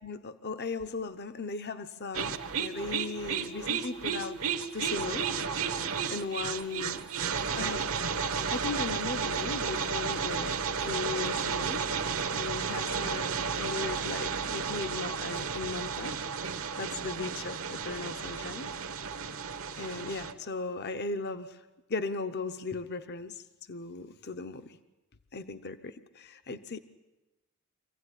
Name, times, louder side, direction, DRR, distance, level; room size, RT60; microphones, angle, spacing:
voice 1, 0.0-4.4 4.7-5.3 6.1-7.0 7.6-8.0 8.5-10.6 10.8-11.9 12.3-16.2 16.8-18.7 19.8-21.6 21.9-24.8 25.3-26.8, left 4 dB, 45° left, 10 dB, 0.8 m, -37 dB
sound 1, 2.1-20.3, right 6 dB, 65° right, 1.2 m, -33 dB
25.5 x 16.0 x 9.9 m, 1.0 s
head